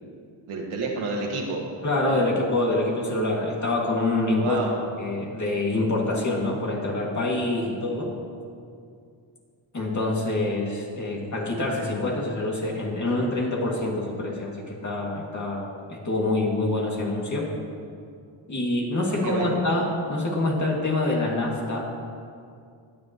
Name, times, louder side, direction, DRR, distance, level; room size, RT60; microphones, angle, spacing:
voice 1, 0.5-1.6 2.1-2.3 4.4-4.7 19.1-19.6, right 3 dB, 90° right, 0 dB, 1.9 m, -29 dB
voice 2, 1.8-4.6 5.0-8.1 9.7-17.5 18.5-21.8, left 2 dB, 35° left, -2 dB, 2.3 m, -26 dB
22.0 x 7.7 x 3.1 m, 2.3 s
cardioid pair, 85°, 47 cm